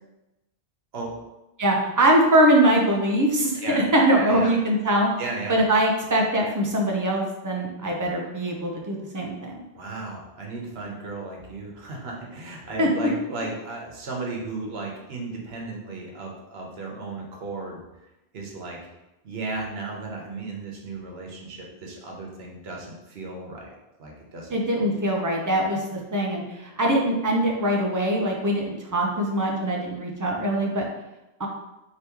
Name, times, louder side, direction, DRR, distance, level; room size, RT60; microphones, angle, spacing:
voice 1, 1.6-5.1 5.5-9.6 12.8-12.9 24.5-30.9 31.4-31.5, right 1 dB, 30° right, -1 dB, 0.4 m, -22 dB
voice 2, 4.1-4.5 5.2-5.6 9.7-17.8 18.3-18.8 19.2-23.7 24.0-24.8, right 3 dB, 80° right, -1 dB, 1.0 m, -35 dB
3.5 x 2.8 x 2.9 m, 0.97 s
omnidirectional pair, 1.1 m